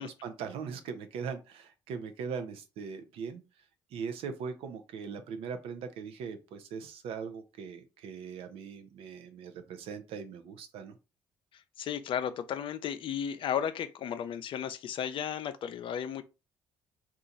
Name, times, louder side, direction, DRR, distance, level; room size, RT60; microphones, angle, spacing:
voice 1, 0.0-3.4 3.9-10.9, right 6 dB, 70° right, 0.6 m, -40 dB
voice 2, 11.8-16.2, left 9 dB, 60° left, 0.4 m, -34 dB
2.9 x 2.4 x 3.8 m
hypercardioid pair, 60°, 10 cm